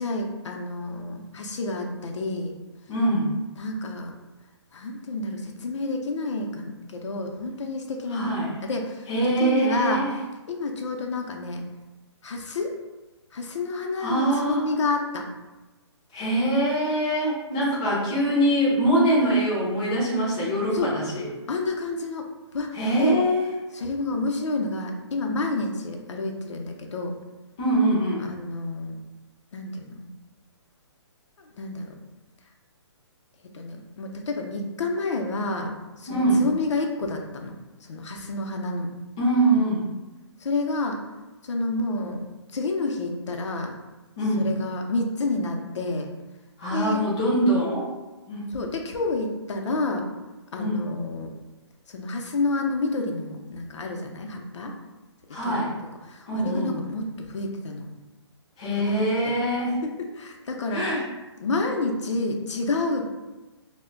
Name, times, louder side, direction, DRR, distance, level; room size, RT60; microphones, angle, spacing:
voice 1, 0.0-2.5 3.6-4.1 4.7-8.3 8.6-9.1 9.4-10.1 10.5-11.6 12.2-12.7 13.3-15.3 17.6-17.7 17.9-18.0 20.7-20.9 21.5-22.3 22.5-23.2 23.7-27.1 28.2-29.0 29.5-30.1 31.4-32.0 33.5-38.9 40.4-41.0 41.4-42.2 42.5-43.8 44.4-46.1 46.7-47.0 48.5-50.1 50.5-51.3 51.9-54.7 55.4-55.7 56.0-57.9 58.8-59.3 59.8-60.9 61.4-63.0, left 3 dB, 90° left, 2 dB, 0.5 m, -29 dB
voice 2, 2.9-3.3 8.1-8.5 9.1-10.1 14.0-14.6 16.1-21.3 22.7-23.6 27.6-28.2 36.1-36.4 39.2-39.8 44.2-44.5 46.6-47.9 48.3-48.5 50.6-50.8 55.3-55.7 56.3-56.8 58.6-59.7 60.7-61.0, right 1 dB, 10° left, -7 dB, 0.3 m, -23 dB
2.1 x 2.1 x 3.6 m, 1.1 s
hypercardioid pair, 170°, 15 cm